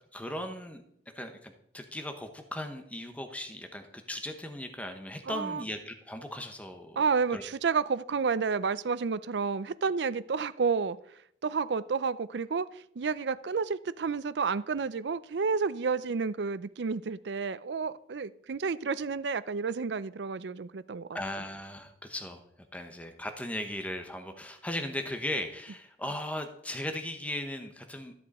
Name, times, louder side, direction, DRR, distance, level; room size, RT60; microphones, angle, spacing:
voice 1, 0.1-0.8 1.1-7.0 7.3-7.4 21.1-22.4 22.7-28.1, left 1 dB, 10° left, 5 dB, 1.0 m, -37 dB
voice 2, 5.3-5.6 7.0-11.0 11.4-21.1, right 5 dB, 70° right, 16 dB, 0.5 m, -30 dB
13.5 x 7.8 x 4.2 m, 0.69 s
head